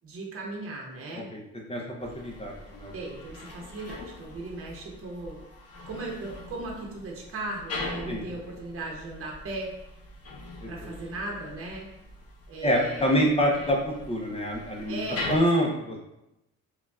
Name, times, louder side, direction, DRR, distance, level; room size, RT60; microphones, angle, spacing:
voice 1, 0.0-1.3 2.9-5.4 5.9-9.7 10.7-11.9 12.5-13.3 14.9-15.8, right 2 dB, 45° right, -2 dB, 0.9 m, -37 dB
voice 2, 1.7-2.9 8.1-8.2 10.6-10.9 12.6-15.0 15.3-16.0, equal, 20° left, -1 dB, 0.6 m, -26 dB
sound 1, 2.0-15.4, left 2 dB, 55° left, 0.7 m, -42 dB
5.1 x 2.3 x 2.3 m, 0.89 s
cardioid pair, 90°, 30 cm